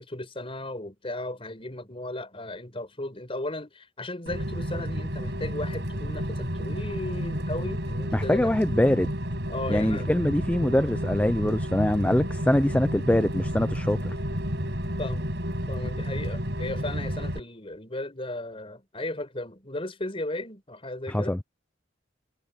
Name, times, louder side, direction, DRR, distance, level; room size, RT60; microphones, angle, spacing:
voice 1, 0.0-8.5 9.5-10.1 15.0-15.3 15.7-21.4, left 1 dB, 30° left, 5.2 m, -35 dB
Rain, 4.3-17.4, equal, 60° right, 7.9 m, -31 dB
voice 2, 8.1-9.1 9.7-14.1 21.1-21.4, left 1 dB, 10° left, 0.4 m, -24 dB
head